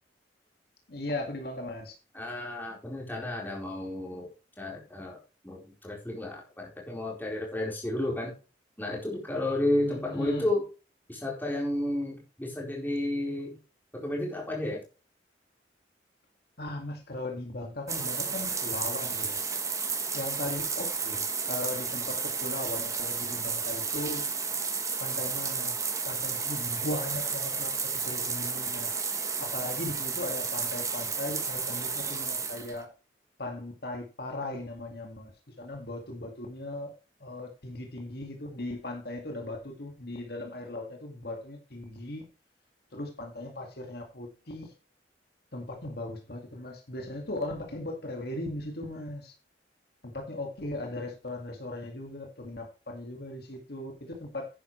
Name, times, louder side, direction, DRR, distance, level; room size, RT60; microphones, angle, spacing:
voice 1, 0.9-2.0 9.9-10.5 16.6-19.4 20.1-24.3 25.0-29.0 29.4-32.9 33.4-35.3 35.6-36.9 37.2-42.3 42.9-44.7 45.5-49.3 50.0-54.5, left 2 dB, 55° left, 2.1 m, -38 dB
voice 2, 2.1-4.3 4.6-5.2 5.4-8.3 8.8-10.6 11.1-13.6 13.9-14.8, left 1 dB, 10° left, 4.3 m, -32 dB
sound 1, 17.9-32.8, right 5 dB, 15° right, 1.3 m, -32 dB
10.5 x 10.0 x 3.2 m
head